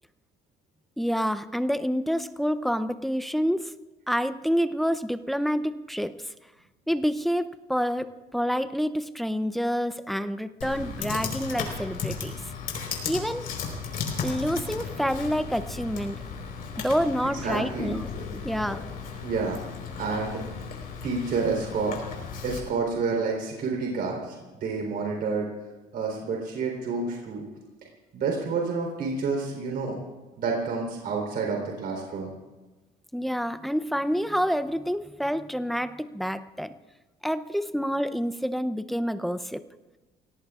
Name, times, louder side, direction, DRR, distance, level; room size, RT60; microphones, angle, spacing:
voice 1, 1.0-3.7 4.1-6.2 6.9-12.4 13.1-13.5 14.2-16.2 16.8-18.8 33.1-36.7 37.2-39.6, equal, ahead, 12 dB, 0.6 m, -28 dB
Computer keyboard, 10.6-22.6, left 5 dB, 55° left, 4.3 m, -35 dB
voice 2, 17.4-17.9 19.2-19.6 20.0-20.4 21.0-21.9 22.4-25.5 25.9-27.4 28.1-30.0 30.4-32.3, right 4 dB, 65° right, 0 dB, 3.8 m, -29 dB
29.5 x 18.0 x 2.5 m, 1.2 s
cardioid pair, 110°, 17 cm